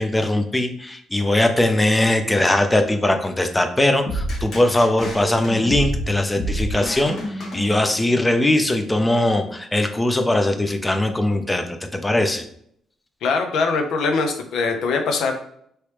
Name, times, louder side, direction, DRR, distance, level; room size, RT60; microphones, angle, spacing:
voice 1, 0.0-12.5, left 1 dB, 15° left, 6 dB, 0.5 m, -20 dB
sound 1, 4.1-8.2, equal, 60° left, 1.3 m, -28 dB
voice 2, 13.2-15.3, left 4 dB, 80° left, 5 dB, 0.6 m, -22 dB
3.1 x 3.0 x 3.1 m, 0.66 s
cardioid pair, 90°, 0 cm